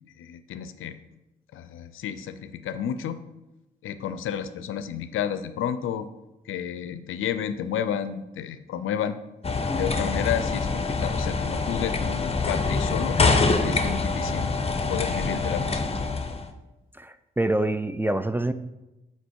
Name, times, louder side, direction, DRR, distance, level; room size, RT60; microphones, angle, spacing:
voice 1, 0.2-1.0 1.5-3.2 3.8-6.1 6.5-9.2 9.7-13.2 13.6-14.5 14.9-15.9, left 9 dB, 75° left, 12 dB, 0.5 m, -31 dB
sound 1, 9.4-16.5, left 3 dB, 30° left, 0.7 m, -25 dB
voice 2, 17.0-18.5, right 1 dB, 10° right, 11 dB, 0.3 m, -26 dB
7.7 x 2.9 x 4.5 m, 0.98 s
supercardioid pair, 45°, 21 cm